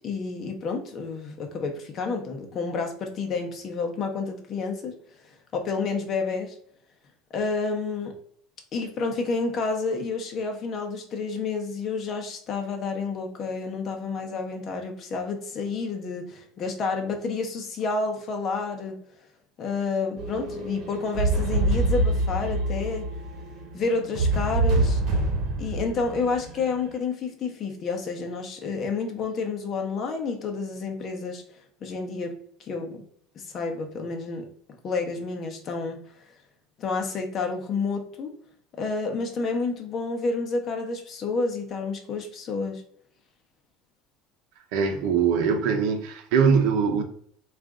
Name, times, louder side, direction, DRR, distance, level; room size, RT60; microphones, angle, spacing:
voice 1, 0.0-5.0 5.2-6.6 7.3-8.2 8.7-19.0 19.6-23.1 23.7-25.0 25.6-31.4 31.8-33.0 33.3-34.5 34.8-36.0 36.8-38.3 38.8-42.8, left 4 dB, 40° left, 0.8 m, -30 dB
sound 1, 20.2-26.9, right 2 dB, 50° right, 1.1 m, -26 dB
voice 2, 44.7-47.0, right 6 dB, 75° right, 0.7 m, -22 dB
3.6 x 2.5 x 3.7 m
cardioid pair, 140°, 0 cm